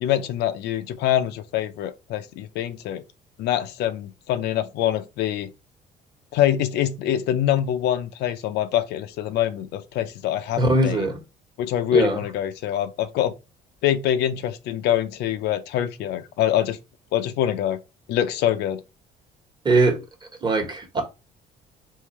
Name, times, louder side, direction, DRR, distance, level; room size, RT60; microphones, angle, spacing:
voice 1, 0.0-3.0 3.4-5.5 6.3-11.1 11.6-13.3 13.8-16.8 17.1-17.8 18.1-18.8, left 11 dB, 80° left, 0.5 m, -24 dB
voice 2, 10.6-11.2 11.9-12.2 19.6-20.0 20.4-21.0, right 2 dB, 25° right, 1.1 m, -20 dB
3.7 x 2.5 x 3.0 m
cardioid pair, 110°, 17 cm